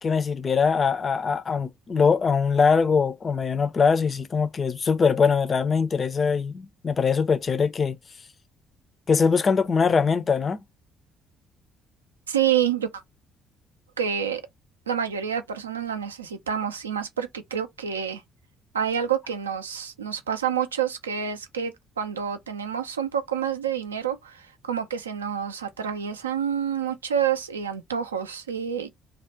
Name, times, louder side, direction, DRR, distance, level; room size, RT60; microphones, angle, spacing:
voice 1, 0.0-8.0 9.1-10.6, left 5 dB, 40° left, 0.4 m, -22 dB
voice 2, 12.3-12.9 14.0-14.4 14.9-18.2 18.7-28.9, right 8 dB, 85° right, 0.3 m, -28 dB
2.4 x 2.1 x 2.7 m
figure-of-eight pair, 45°, 0 cm